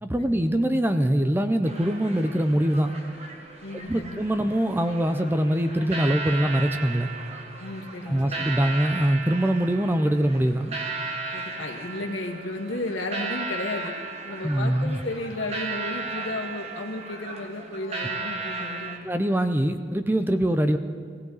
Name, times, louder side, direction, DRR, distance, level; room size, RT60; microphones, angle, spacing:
voice 1, 0.0-3.0 3.9-7.1 8.1-10.7 14.4-15.0 19.0-20.8, right 1 dB, 10° right, 9 dB, 0.5 m, -23 dB
sound 1, 1.6-19.0, right 3 dB, 35° right, 1.4 m, -35 dB
voice 2, 3.6-4.2 7.6-8.6 11.3-13.9 14.2-19.1, left 2 dB, 80° left, 2 dB, 1.8 m, -34 dB
18.5 x 17.0 x 4.0 m, 2.1 s
head